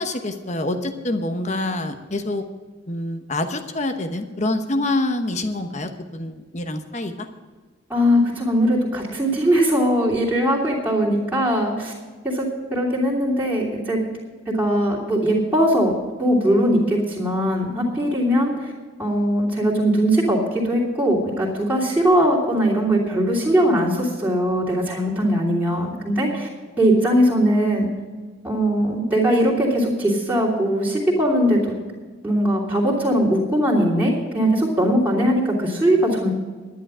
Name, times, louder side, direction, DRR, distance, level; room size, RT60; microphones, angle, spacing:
voice 1, 0.0-2.4 2.9-7.3, left 2 dB, 35° left, 7 dB, 1.1 m, -26 dB
voice 2, 7.9-11.9 12.2-12.4 12.7-14.0 14.5-18.7 19.0-26.5 26.8-27.9 28.4-31.8 32.2-36.3, equal, 10° right, -8 dB, 3.0 m, -20 dB
11.5 x 10.5 x 6.2 m, 1.4 s
head